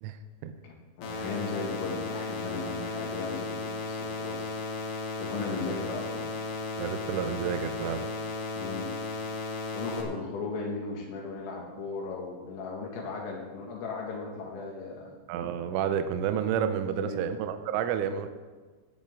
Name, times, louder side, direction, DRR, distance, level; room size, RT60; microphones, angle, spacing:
voice 1, 0.6-4.6 5.1-6.2 8.5-8.9 9.7-15.1 17.0-17.2, left 4 dB, 80° left, -1 dB, 4.6 m, -36 dB
sound 1, 1.0-10.0, left 3 dB, 60° left, 2.4 m, -35 dB
voice 2, 6.8-8.1 15.3-18.3, right 8 dB, 80° right, 9 dB, 3.1 m, -30 dB
17.0 x 10.0 x 3.8 m, 1.4 s
omnidirectional pair, 5.8 m